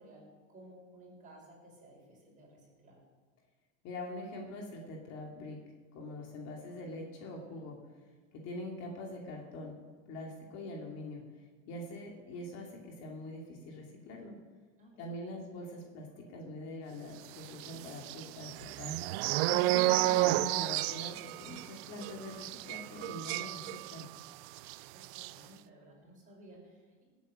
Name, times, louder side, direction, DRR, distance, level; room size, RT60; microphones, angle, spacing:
voice 1, 0.0-3.0 7.1-7.7 14.8-15.4 24.9-27.0, right 1 dB, 20° right, -2 dB, 5.9 m, -56 dB
voice 2, 3.8-5.6 5.9-7.8 8.3-9.8 10.1-11.2 11.7-14.4 15.0-19.0 19.4-24.1, left 1 dB, 45° left, 0 dB, 2.6 m, -43 dB
sound 1, 17.6-24.3 24.6-24.8 25.0-25.3, right 18 dB, 55° right, 0.5 m, -31 dB
19.0 x 8.4 x 6.5 m, 1.4 s
supercardioid pair, 140°, 37 cm